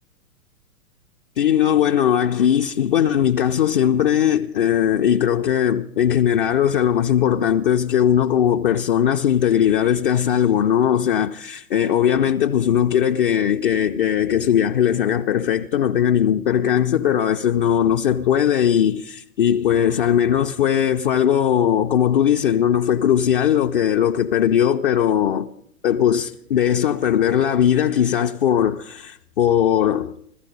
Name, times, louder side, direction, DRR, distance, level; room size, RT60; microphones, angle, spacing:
voice 1, 1.4-25.5 25.8-30.1, left 9 dB, 40° left, 0.5 m, -19 dB
15.0 x 14.5 x 5.3 m
figure-of-eight pair, 110°, 43 cm